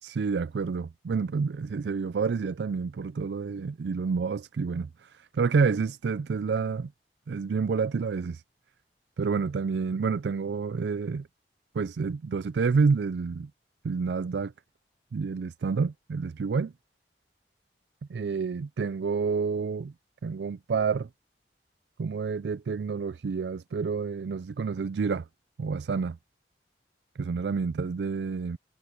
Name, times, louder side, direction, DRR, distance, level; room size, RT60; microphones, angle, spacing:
voice 1, 0.0-6.9 7.3-8.4 9.2-11.3 11.7-13.5 13.8-14.5 15.1-16.7 18.1-19.9 20.2-21.1 22.0-25.3 25.6-26.2 27.2-28.6, right 5 dB, 70° right, 0.4 m, -29 dB
head